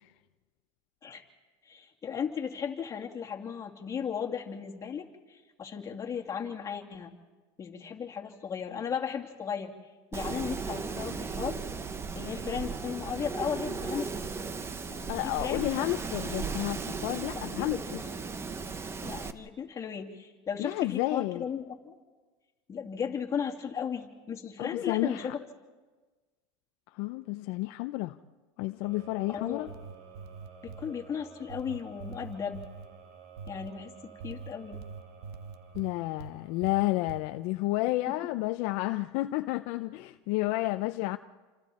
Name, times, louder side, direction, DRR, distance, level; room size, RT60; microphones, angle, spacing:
voice 1, 1.6-7.1 7.6-9.7 10.1-11.6 12.1-14.1 14.9-16.3 17.6-18.1 19.0-21.9 22.7-25.4 29.3-29.7 30.6-32.6 33.5-34.8 38.1-38.2, left 7 dB, 25° left, 2.8 m, -36 dB
Wind, 10.1-19.3, right 5 dB, 20° right, 1.1 m, -36 dB
voice 2, 15.1-17.8 20.6-21.4 24.6-25.3 26.9-28.2 28.6-29.7 35.7-41.2, left 19 dB, 60° left, 0.7 m, -31 dB
sound 1, 28.8-37.7, right 7 dB, 60° right, 5.2 m, -53 dB
sound 2, 29.5-30.9 31.5-32.9 33.4-33.7 34.2-36.3 36.6-37.2, right 5 dB, 85° right, 1.2 m, -44 dB
28.5 x 26.5 x 4.3 m
supercardioid pair, 125°, 13 cm